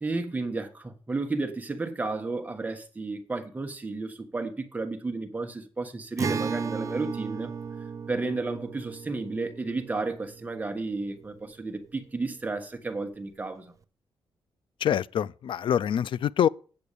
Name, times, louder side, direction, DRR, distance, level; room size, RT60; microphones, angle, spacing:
voice 1, 0.0-7.5 8.1-13.7, right 3 dB, 15° right, 1.2 m, -32 dB
Acoustic guitar, 6.2-11.7, right 5 dB, 35° right, 0.5 m, -35 dB
voice 2, 14.8-16.5, left 9 dB, 60° left, 0.4 m, -25 dB
8.6 x 7.0 x 6.7 m
wide cardioid pair, 160°, 9 cm